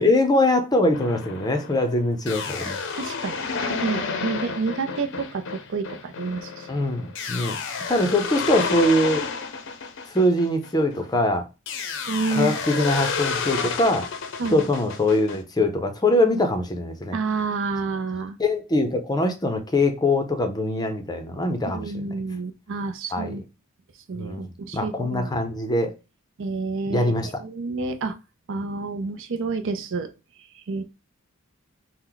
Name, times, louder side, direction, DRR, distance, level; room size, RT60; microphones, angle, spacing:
voice 1, 0.0-2.8 6.7-7.6 7.9-9.3 10.1-11.5 12.3-14.1 14.5-17.2 18.4-22.1 23.1-23.4 24.1-25.9 26.9-27.3, left 1 dB, 20° left, 0.5 m, -23 dB
sound 1, 0.9-11.1 11.7-15.4, left 5 dB, 60° left, 0.6 m, -31 dB
voice 2, 2.6-6.7 12.1-12.6 14.4-14.6 17.1-18.4 21.7-23.4 24.1-25.3 26.4-28.2 28.5-30.1 30.5-30.8, right 4 dB, 60° right, 0.5 m, -29 dB
4.4 x 2.1 x 3.8 m
head